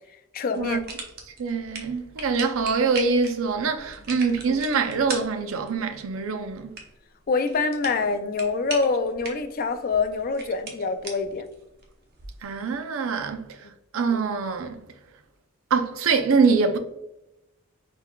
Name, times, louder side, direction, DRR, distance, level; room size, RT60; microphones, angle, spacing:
voice 1, 0.3-0.8 7.3-11.5 13.6-13.7, left 4 dB, 40° left, 0.4 m, -25 dB
sound 1, 0.5-12.4, right 3 dB, 45° right, 0.8 m, -41 dB
voice 2, 1.4-6.8 12.4-13.5 13.9-14.8 15.7-16.8, right 4 dB, 70° right, 0.5 m, -24 dB
4.4 x 3.8 x 2.3 m
head